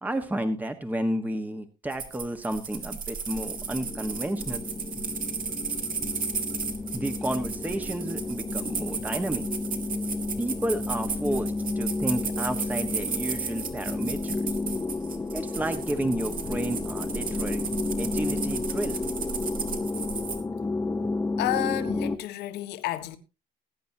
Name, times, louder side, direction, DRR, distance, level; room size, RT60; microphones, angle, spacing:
voice 1, 0.0-4.6 6.9-9.4 10.4-14.4 15.3-17.7 18.0-19.1, right 1 dB, 10° right, 1.3 m, -31 dB
sound 1, 1.9-20.4, right 6 dB, 55° right, 2.7 m, -34 dB
sound 2, 3.3-22.2, left 3 dB, 15° left, 0.9 m, -32 dB
voice 2, 21.4-23.2, left 13 dB, 85° left, 1.6 m, -30 dB
20.5 x 9.4 x 2.8 m
cardioid pair, 110°, 17 cm